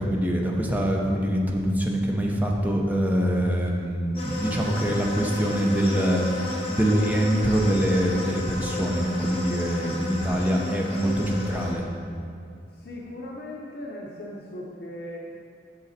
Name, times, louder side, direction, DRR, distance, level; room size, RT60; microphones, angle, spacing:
voice 1, 0.0-6.2 6.7-11.8, equal, 10° right, -1 dB, 0.7 m, -24 dB
sound 1, 4.2-11.7, left 1 dB, 30° left, 1.2 m, -33 dB
voice 2, 12.7-15.2, left 1 dB, 55° left, -3 dB, 0.7 m, -38 dB
7.7 x 6.3 x 4.2 m, 2.3 s
head